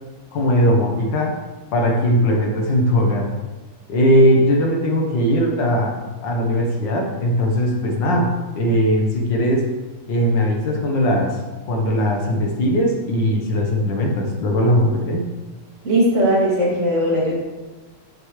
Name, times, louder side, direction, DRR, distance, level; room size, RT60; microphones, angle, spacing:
voice 1, 0.3-1.4 1.7-3.3 3.9-6.0 6.2-9.7 10.1-11.4 11.7-15.3, equal, 65° left, 2 dB, 1.8 m, -19 dB
voice 2, 15.8-17.3, equal, 35° right, -6 dB, 2.7 m, -18 dB
9.6 x 7.3 x 3.2 m, 1.2 s
omnidirectional pair, 2.3 m